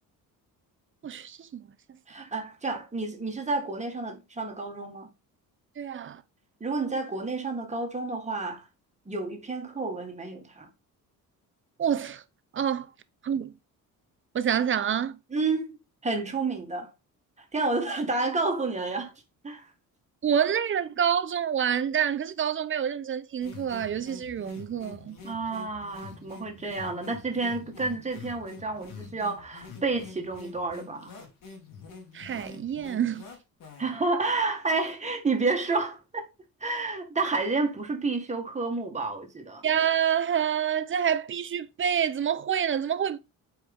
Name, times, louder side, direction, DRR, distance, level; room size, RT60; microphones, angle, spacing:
voice 1, 1.0-1.6 5.8-6.2 11.8-12.2 12.5-12.9 13.2-13.5 14.3-15.2 20.2-25.2 32.1-33.2 39.6-43.2, right 8 dB, 35° right, 0.7 m, -27 dB
voice 2, 2.1-5.1 6.6-8.6 9.1-10.7 15.3-15.8 16.0-16.9 17.5-19.1 19.4-19.6 25.2-31.1 33.8-36.3 36.6-39.6, right 3 dB, 20° right, 1.9 m, -30 dB
sound 1, 23.4-34.0, left 5 dB, 65° left, 2.6 m, -46 dB
7.8 x 4.8 x 3.6 m
cardioid pair, 125°, 35 cm